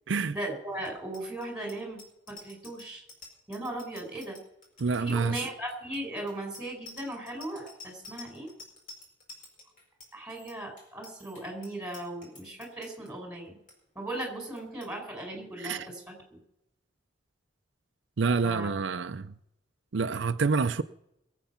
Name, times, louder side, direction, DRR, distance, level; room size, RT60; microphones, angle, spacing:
voice 1, 0.3-2.0 2.3-3.0 3.5-4.4 5.0-8.5 10.1-13.5 13.9-16.4 18.4-18.7, right 1 dB, 5° right, 5.2 m, -37 dB
Bicycle bell, 0.8-13.1 13.5-13.7 14.0-14.3 14.6-14.9, left 3 dB, 45° left, 4.9 m, -50 dB
voice 2, 4.8-5.3 15.6-15.9 18.2-19.3 19.9-20.8, right 4 dB, 80° right, 0.5 m, -27 dB
22.0 x 8.3 x 5.8 m
head